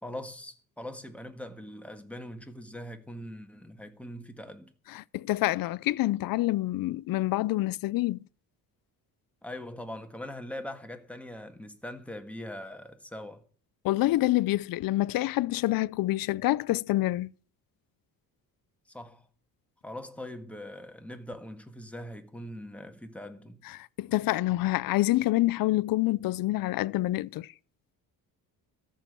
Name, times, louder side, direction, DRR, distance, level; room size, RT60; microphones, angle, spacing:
voice 1, 0.0-4.7 9.4-13.4 18.9-19.3 19.8-23.6, left 1 dB, 5° left, 1.6 m, -42 dB
voice 2, 4.9-8.2 13.8-17.3 23.7-27.5, left 17 dB, 65° left, 0.5 m, -27 dB
14.0 x 6.9 x 9.2 m
cardioid pair, 130°, 37 cm